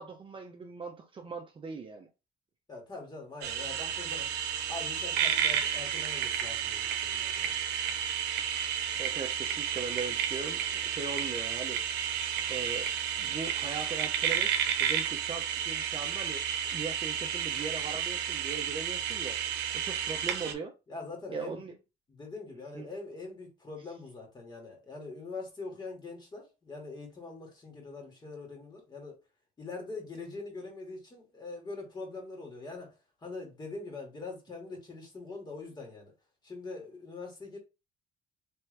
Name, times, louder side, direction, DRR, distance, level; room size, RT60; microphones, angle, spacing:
voice 1, 0.0-2.1 8.9-12.1 12.5-12.9 13.2-14.5 14.8-20.7 21.3-21.7 22.7-22.9, right 4 dB, 30° right, 0.7 m, -40 dB
voice 2, 2.7-4.3 4.7-7.5 19.2-19.3 20.9-21.6 22.1-29.2 29.6-32.9 33.2-36.1 36.4-37.6, left 3 dB, 25° left, 1.9 m, -43 dB
sound 1, 3.4-20.5, right 9 dB, 90° right, 0.7 m, -32 dB
3.4 x 3.0 x 3.2 m
cardioid pair, 110°, 17 cm